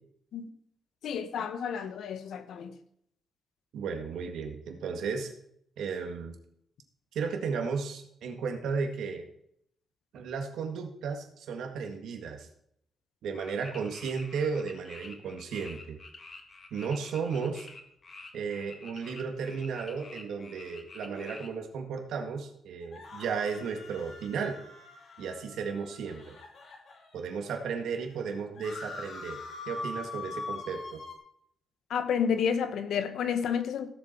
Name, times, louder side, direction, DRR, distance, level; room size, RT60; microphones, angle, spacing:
voice 1, 1.0-2.8 31.9-33.9, left 7 dB, 75° left, 1.1 m, -30 dB
voice 2, 3.7-5.3 5.8-6.4 7.1-9.3 10.1-12.5 13.2-16.0 16.7-17.7 18.3-24.6 25.2-26.4 27.1-29.4 29.7-31.0, right 5 dB, 85° right, 1.9 m, -34 dB
sound 1, 13.3-21.5, left 3 dB, 35° left, 1.6 m, -48 dB
sound 2, 22.8-27.3 27.8-27.9 28.1-31.2, left 3 dB, 55° left, 2.8 m, -43 dB
15.5 x 7.1 x 4.5 m
cardioid pair, 135°, 0 cm